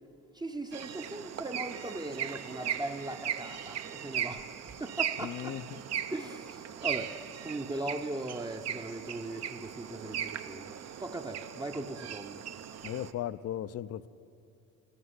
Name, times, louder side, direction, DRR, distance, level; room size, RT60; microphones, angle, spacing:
voice 1, 0.3-5.6 6.1-7.2 7.4-12.4, right 2 dB, 15° right, 0.7 m, -39 dB
sound 1, 0.7-13.1, right 9 dB, 55° right, 0.8 m, -38 dB
voice 2, 5.2-5.8 12.8-14.1, left 11 dB, 50° left, 0.5 m, -37 dB
13.0 x 11.5 x 9.7 m
cardioid pair, 90°, 31 cm